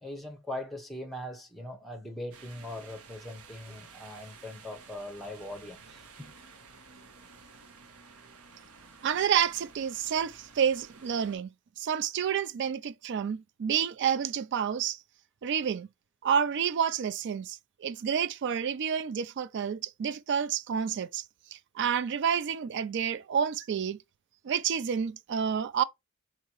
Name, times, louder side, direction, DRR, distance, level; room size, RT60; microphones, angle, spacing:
voice 1, 0.0-6.4, left 1 dB, ahead, 0.8 m, -41 dB
sound 1, 2.3-11.4, right 5 dB, 75° right, 0.9 m, -53 dB
voice 2, 9.0-11.5 11.8-15.0 15.4-15.9 16.2-21.2 21.5-24.0 24.4-25.8, right 8 dB, 50° right, 0.3 m, -29 dB
4.6 x 2.8 x 2.9 m
head